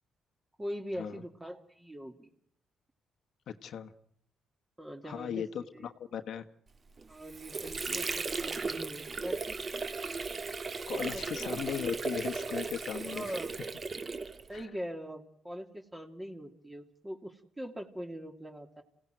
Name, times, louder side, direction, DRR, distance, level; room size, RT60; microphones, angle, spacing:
voice 1, 0.6-2.3 4.8-5.4 5.7-5.9 7.1-9.6 11.0-11.2 13.0-13.5 14.5-18.8, equal, 15° right, 4 dB, 2.6 m, -42 dB
voice 2, 3.5-3.9 5.0-6.4 10.9-13.4 14.5-14.6, left 8 dB, 70° left, 7 dB, 1.3 m, -37 dB
Water / Sink (filling or washing), 7.0-14.6, right 4 dB, 35° right, 1.9 m, -36 dB
27.5 x 17.0 x 9.2 m, 0.77 s
cardioid pair, 90°, 0 cm